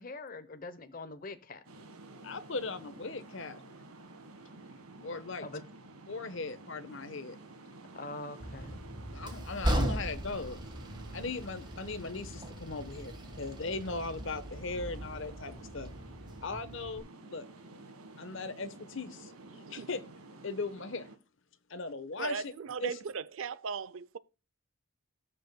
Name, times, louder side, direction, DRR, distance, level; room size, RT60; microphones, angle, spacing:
voice 1, 0.0-1.6 5.4-5.6 7.9-8.8, left 2 dB, 40° left, 0.8 m, -43 dB
sound 1, 1.6-21.2, right 2 dB, 90° right, 1.5 m, -51 dB
voice 2, 2.2-3.6 5.0-5.5 6.1-7.4 9.1-10.6 11.1-15.9 16.4-17.4 18.2-19.3 19.7-20.0 20.4-21.1 21.7-22.5 22.8-22.9, left 3 dB, 60° left, 1.0 m, -38 dB
Train, 8.4-17.0, right 1 dB, 20° right, 1.4 m, -38 dB
voice 3, 19.5-19.9 22.2-24.2, right 5 dB, 65° right, 0.5 m, -38 dB
18.0 x 6.5 x 2.2 m
head